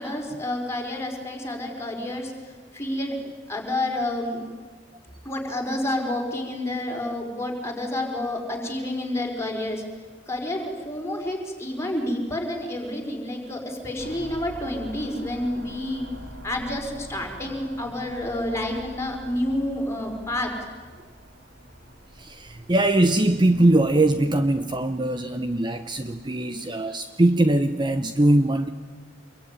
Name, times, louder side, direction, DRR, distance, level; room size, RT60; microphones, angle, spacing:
voice 1, 0.0-3.1 3.5-4.4 5.2-9.8 10.3-16.1 16.4-20.5, left 1 dB, 15° left, 0 dB, 4.7 m, -29 dB
sound 1, 14.0-26.3, equal, 65° right, 2.7 m, -45 dB
voice 2, 22.2-28.7, right 1 dB, 25° right, 9 dB, 0.8 m, -21 dB
26.5 x 22.5 x 9.7 m, 1.5 s
head